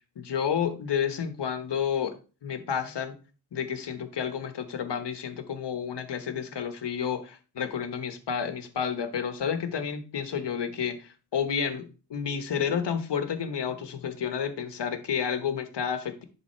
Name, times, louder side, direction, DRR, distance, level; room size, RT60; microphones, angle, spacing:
voice 1, 0.2-2.1 2.4-3.2 3.5-16.2, left 7 dB, 85° left, 8 dB, 1.2 m, -30 dB
10.5 x 3.6 x 4.5 m, 0.35 s
wide cardioid pair, 75°, 41 cm